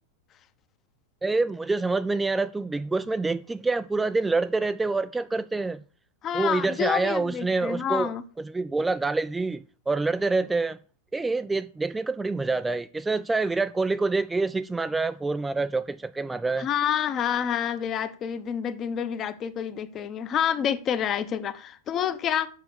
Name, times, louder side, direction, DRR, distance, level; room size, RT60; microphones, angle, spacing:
voice 1, 1.2-5.8 6.3-10.8 11.1-16.7, right 3 dB, 10° right, 0.3 m, -26 dB
voice 2, 6.2-8.2 16.6-22.5, left 8 dB, 30° left, 0.8 m, -28 dB
7.4 x 5.8 x 6.7 m
figure-of-eight pair, 90°, 0 cm